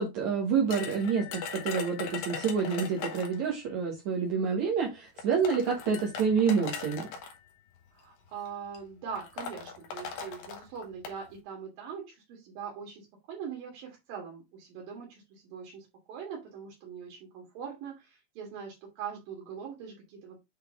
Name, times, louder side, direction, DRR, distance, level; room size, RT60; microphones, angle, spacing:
voice 1, 0.0-7.1, right 6 dB, 65° right, -1 dB, 2.4 m, -28 dB
sound 1, 0.7-3.5 4.5-4.6 5.2-7.3 8.2-8.5 8.7-8.8 9.2-11.2, left 6 dB, 85° left, 3.1 m, -39 dB
voice 2, 7.9-20.4, right 7 dB, 80° right, 0 dB, 3.6 m, -42 dB
7.9 x 4.1 x 3.5 m, 0.22 s
omnidirectional pair, 4.0 m